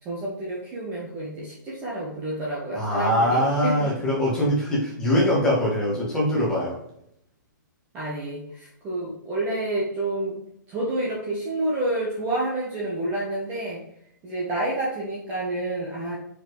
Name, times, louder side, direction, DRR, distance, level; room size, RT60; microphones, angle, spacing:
voice 1, 0.0-3.9 7.9-10.4 10.7-13.8 14.2-16.2, right 2 dB, 15° right, -5 dB, 1.2 m, -29 dB
voice 2, 2.7-6.8, equal, 5° left, -6 dB, 1.7 m, -22 dB
4.9 x 4.4 x 4.7 m, 0.73 s
hypercardioid pair, 170°, 11 cm